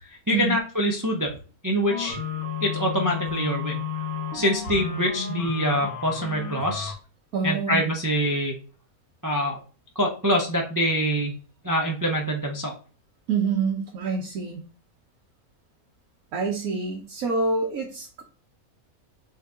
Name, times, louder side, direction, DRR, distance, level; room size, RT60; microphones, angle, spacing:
voice 1, 0.0-1.4 1.6-2.2 2.6-3.8 4.3-6.9 7.4-8.6 9.2-9.6 10.0-11.3 11.6-12.7, equal, 25° right, 0 dB, 0.4 m, -25 dB
sound 1, 1.9-6.9, left 7 dB, 70° left, 1.7 m, -32 dB
voice 2, 7.3-8.0 13.3-14.6 16.3-18.2, right 4 dB, 70° right, 0 dB, 1.4 m, -27 dB
4.0 x 3.8 x 3.5 m, 0.37 s
omnidirectional pair, 1.6 m